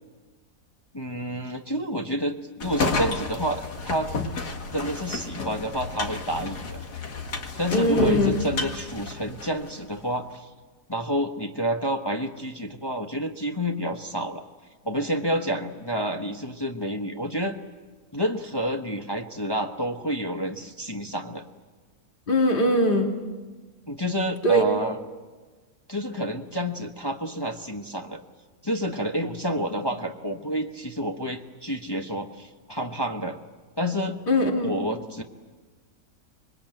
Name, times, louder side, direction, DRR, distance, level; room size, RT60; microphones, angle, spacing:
voice 1, 0.9-4.1 4.7-6.8 7.6-10.5 10.9-14.5 14.8-17.6 18.1-21.4 23.9-25.0 25.9-28.2 28.6-33.4 33.8-34.2 34.6-35.2, equal, 20° left, 3 dB, 1.0 m, -29 dB
sound 1, 2.6-9.8, left 3 dB, 85° left, 2.5 m, -31 dB
voice 2, 7.7-8.3 22.3-23.1 24.4-24.7 34.3-34.7, equal, 35° left, 2 dB, 2.3 m, -21 dB
25.5 x 21.5 x 9.1 m, 1.3 s
omnidirectional pair, 1.7 m